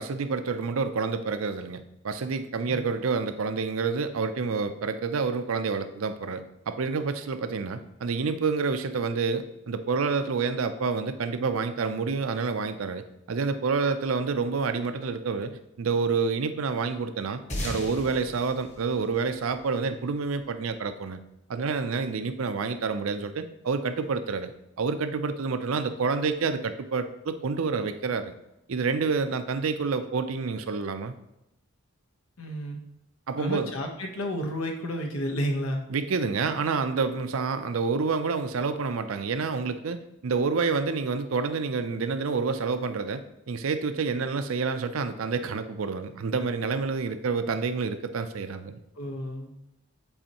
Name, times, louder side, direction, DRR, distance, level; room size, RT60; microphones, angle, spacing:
voice 1, 0.0-15.5 15.8-21.2 21.5-24.5 24.8-28.3 28.7-31.1 33.3-33.7 35.9-48.8, right 4 dB, 75° right, 10 dB, 0.5 m, -28 dB
sound 1, 17.5-20.3, left 1 dB, 35° left, 1.3 m, -37 dB
voice 2, 32.4-32.8 33.4-35.8 49.0-49.5, equal, 85° left, 2 dB, 1.0 m, -31 dB
7.7 x 4.2 x 2.9 m, 0.85 s
head